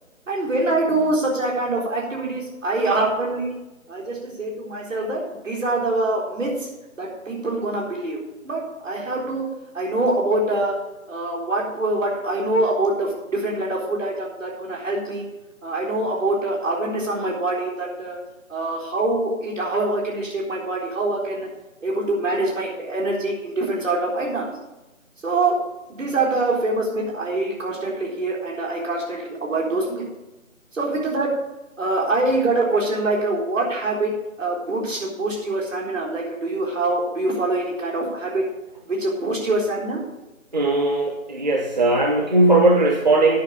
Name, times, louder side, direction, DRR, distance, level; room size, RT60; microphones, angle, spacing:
voice 1, 0.3-3.6 3.9-6.7 7.0-9.5 9.7-10.7 11.1-15.2 15.6-18.2 18.5-21.5 21.8-24.5 25.2-25.5 25.9-30.0 30.7-31.3 31.8-34.1 34.4-38.4 38.9-40.0, right 2 dB, 65° right, -3 dB, 4.0 m, -24 dB
voice 2, 40.5-43.4, right 2 dB, 30° right, 2 dB, 0.8 m, -18 dB
9.6 x 5.7 x 8.3 m, 1.0 s
figure-of-eight pair, 155°, 41 cm